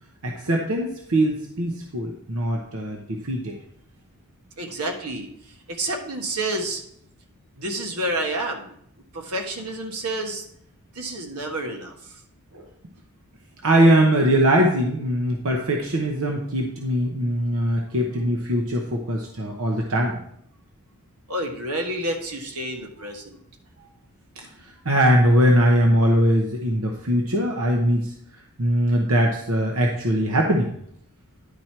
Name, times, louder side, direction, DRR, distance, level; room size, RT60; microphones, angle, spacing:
voice 1, 0.2-3.6 12.5-12.7 13.6-20.2 24.6-28.1 28.6-30.7, equal, 65° right, 1 dB, 0.9 m, -21 dB
voice 2, 4.6-5.3 5.7-6.8 7.6-8.7 9.1-10.4 10.9-11.9 21.3-23.4, right 1 dB, 85° right, 3 dB, 1.3 m, -29 dB
10.5 x 4.4 x 4.5 m, 0.69 s
head